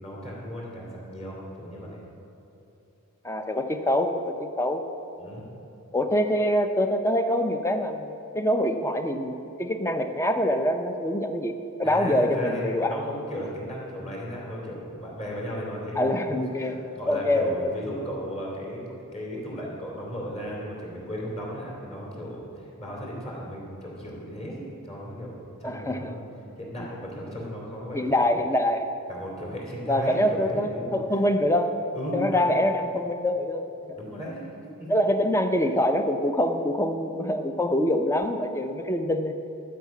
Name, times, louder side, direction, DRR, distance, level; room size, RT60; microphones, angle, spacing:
voice 1, 0.0-2.0 5.2-5.4 11.8-25.3 25.6-26.2 26.6-28.2 29.1-31.2 31.9-32.5 33.8-34.4 34.8-34.9, equal, 30° left, -3 dB, 2.9 m, -36 dB
voice 2, 3.2-4.8 5.9-13.1 16.0-17.7 25.6-26.1 27.9-28.9 29.9-31.7 32.1-33.7 34.9-39.3, left 1 dB, 15° left, 7 dB, 0.6 m, -25 dB
12.0 x 5.8 x 8.5 m, 2.9 s
head